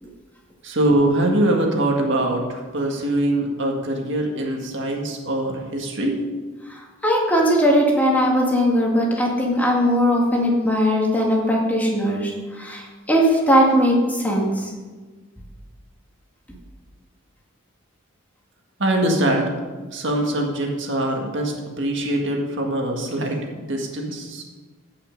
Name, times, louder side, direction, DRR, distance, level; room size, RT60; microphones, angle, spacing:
voice 1, 0.6-6.2 18.8-19.6 19.9-24.4, right 1 dB, 65° right, 1 dB, 1.8 m, -23 dB
voice 2, 6.7-14.7, equal, 10° left, -2 dB, 2.0 m, -19 dB
16.0 x 5.8 x 5.3 m, 1.3 s
head